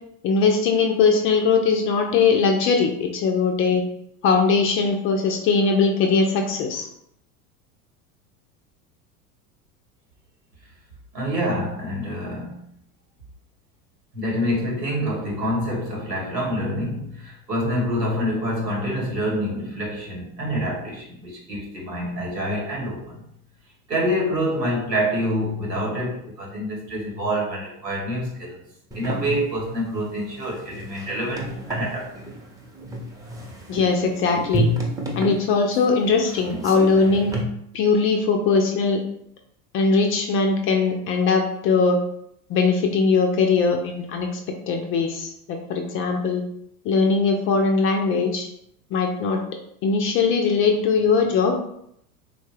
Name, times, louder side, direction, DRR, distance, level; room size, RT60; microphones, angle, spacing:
voice 1, 0.2-3.8 4.2-6.9 33.7-34.7 35.2-37.4 37.7-39.0 39.7-42.0 42.5-44.4 44.7-46.4 46.8-48.5 48.9-49.4 49.8-51.7, left 4 dB, 30° left, 3 dB, 0.4 m, -20 dB
voice 2, 11.1-12.6 14.1-23.2 23.9-28.6 28.9-32.3, equal, 85° right, -2 dB, 1.5 m, -26 dB
sound 1, 28.9-37.4, right 1 dB, 10° right, 0.6 m, -30 dB
3.6 x 2.2 x 3.2 m, 0.73 s
hypercardioid pair, 85°, 48 cm